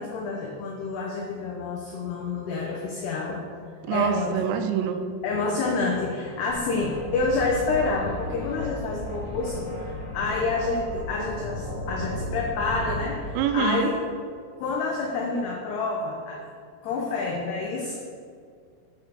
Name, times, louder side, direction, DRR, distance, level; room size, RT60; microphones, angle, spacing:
voice 1, 0.0-4.4 5.2-13.9 14.6-16.4 16.8-18.0, left 3 dB, 85° left, -1 dB, 2.3 m, -28 dB
voice 2, 3.8-5.0 13.4-13.9, right 8 dB, 85° right, 7 dB, 3.2 m, -25 dB
sound 1, 6.5-13.1, left 1 dB, 40° left, 2.1 m, -34 dB
7.0 x 6.3 x 6.6 m, 2.1 s
omnidirectional pair, 5.9 m